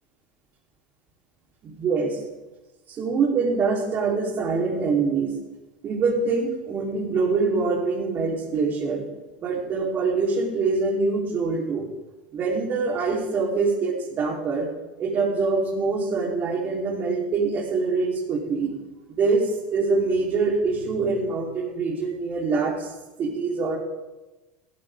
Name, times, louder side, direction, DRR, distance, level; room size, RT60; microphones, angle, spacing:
voice 1, 1.6-2.2 2.9-5.3 5.8-9.0 9.4-11.8 12.3-14.7 15.0-18.7 19.1-23.8, right 4 dB, 40° right, -1 dB, 4.4 m, -24 dB
16.0 x 13.0 x 4.0 m, 1.1 s
hypercardioid pair, 80°, 5 cm